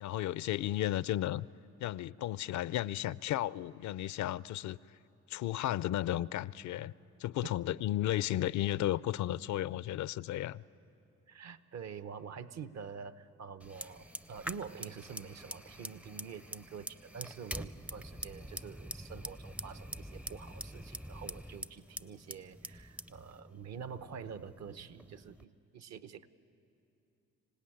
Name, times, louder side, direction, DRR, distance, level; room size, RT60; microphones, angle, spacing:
voice 1, 0.0-1.5 1.8-4.8 5.3-6.9 7.2-10.6, left 13 dB, 70° left, 0.5 m, -34 dB
voice 2, 11.3-26.3, right 6 dB, 60° right, 0.9 m, -47 dB
Fire, 13.6-25.4, equal, 5° right, 0.5 m, -46 dB
25.5 x 17.0 x 10.0 m
cardioid pair, 90°, 30 cm